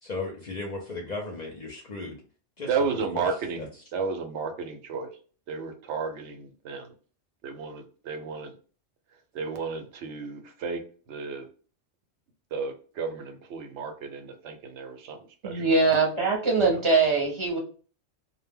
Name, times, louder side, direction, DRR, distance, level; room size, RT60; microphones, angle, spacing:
voice 1, 0.0-2.2 2.6-2.8 3.1-3.3 3.6-3.7 16.6-16.8, left 3 dB, 55° left, 1 dB, 0.5 m, -36 dB
voice 2, 2.7-5.1 5.5-6.9 7.4-8.5 9.3-10.8 11.1-11.5 12.5-15.9, right 5 dB, 85° right, 5 dB, 0.9 m, -33 dB
voice 3, 15.4-17.6, right 3 dB, 30° right, -1 dB, 0.7 m, -22 dB
2.1 x 2.0 x 3.4 m, 0.40 s
omnidirectional pair, 1.1 m